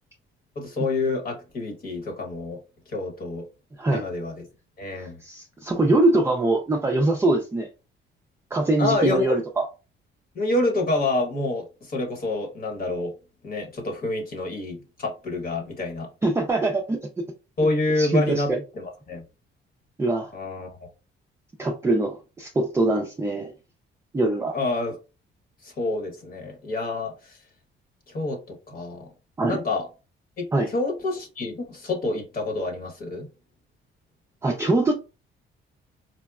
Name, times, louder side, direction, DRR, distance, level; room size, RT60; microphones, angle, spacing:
voice 1, 0.5-2.6 2.9-3.4 3.9-4.4 4.8-5.2 8.8-9.4 10.3-13.1 13.4-16.1 17.6-18.5 18.8-19.2 20.3-20.9 24.5-24.9 25.6-27.4 28.1-29.1 29.4-29.9 30.4-33.3, left 2 dB, 45° left, 1.1 m, -27 dB
voice 2, 5.0-7.7 8.5-9.7 16.2-17.0 18.0-18.6 20.0-20.3 21.6-23.5 24.1-24.5 29.4-29.6 30.5-30.7 34.4-34.9, right 2 dB, 15° right, 0.4 m, -23 dB
4.2 x 2.1 x 2.3 m
cardioid pair, 110°, 20 cm